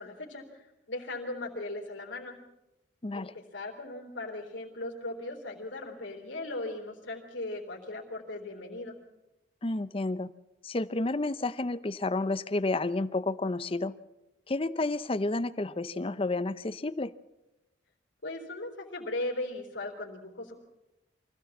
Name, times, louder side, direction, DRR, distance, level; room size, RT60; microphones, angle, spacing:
voice 1, 0.0-2.4 3.1-9.0 18.2-20.6, left 2 dB, 85° left, 0 dB, 3.8 m, -38 dB
voice 2, 3.0-3.3 9.6-10.3 10.6-13.9 14.5-17.1, left 2 dB, 30° left, 15 dB, 0.7 m, -30 dB
24.5 x 15.5 x 7.3 m, 0.95 s
head